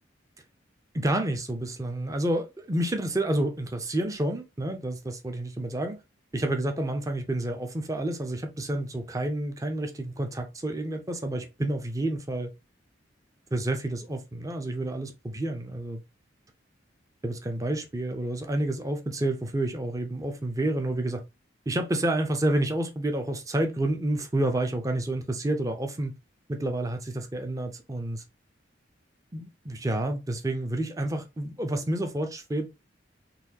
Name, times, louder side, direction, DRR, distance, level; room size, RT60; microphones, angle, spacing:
voice 1, 0.9-6.0 6.3-12.5 13.5-16.0 17.2-21.2 21.7-26.1 26.5-28.2 29.3-32.7, right 1 dB, 15° right, 0.5 m, -29 dB
4.0 x 2.7 x 2.7 m
head